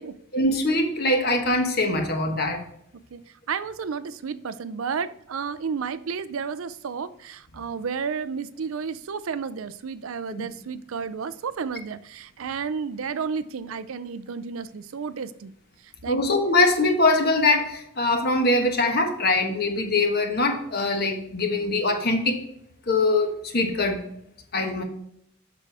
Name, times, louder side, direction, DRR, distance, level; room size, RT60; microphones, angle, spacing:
voice 1, 0.3-2.6 16.1-22.4 22.9-24.0 24.5-24.8, left 2 dB, 50° left, 4 dB, 1.2 m, -22 dB
voice 2, 3.5-15.5 16.0-16.2 24.6-24.8, right 6 dB, 75° right, 15 dB, 0.5 m, -32 dB
7.6 x 6.2 x 3.4 m, 0.72 s
head